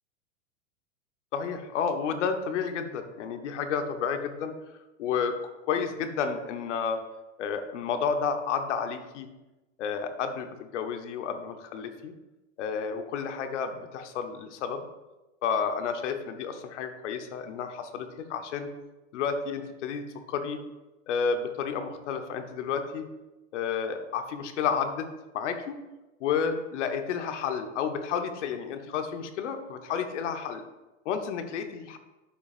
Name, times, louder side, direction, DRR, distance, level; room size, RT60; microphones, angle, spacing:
voice 1, 1.3-4.6 5.0-5.4 5.6-7.0 7.4-9.3 9.8-12.1 12.6-14.8 15.4-18.7 19.1-20.6 21.1-23.1 23.5-25.8 26.2-30.6 31.0-32.0, left 6 dB, 60° left, 7 dB, 1.0 m, -31 dB
11.0 x 5.9 x 2.5 m, 1.1 s
supercardioid pair, 170°, 40 cm